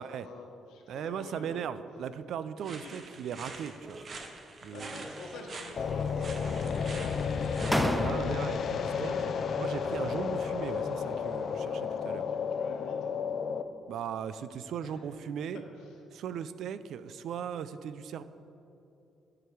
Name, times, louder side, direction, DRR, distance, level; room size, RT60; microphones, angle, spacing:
voice 1, 0.0-1.8 2.6-2.9 4.7-7.0 12.1-13.1 14.8-14.9 15.8-16.0, left 2 dB, 90° left, 1 dB, 1.2 m, -48 dB
voice 2, 0.9-4.1 4.6-5.1 7.6-12.3 13.9-15.6 16.1-18.2, right 8 dB, 75° right, 14 dB, 0.3 m, -38 dB
sound 1, 2.6-7.9, right 3 dB, 45° right, 0.8 m, -46 dB
sound 2, 3.8-4.4 4.8-5.6 5.8-6.6 7.2-7.3 7.7-8.6, equal, 5° right, 0.5 m, -35 dB
sound 3, 5.8-13.6, left 6 dB, 60° left, 0.4 m, -32 dB
12.0 x 4.8 x 4.6 m, 2.9 s
cardioid pair, 90°, 0 cm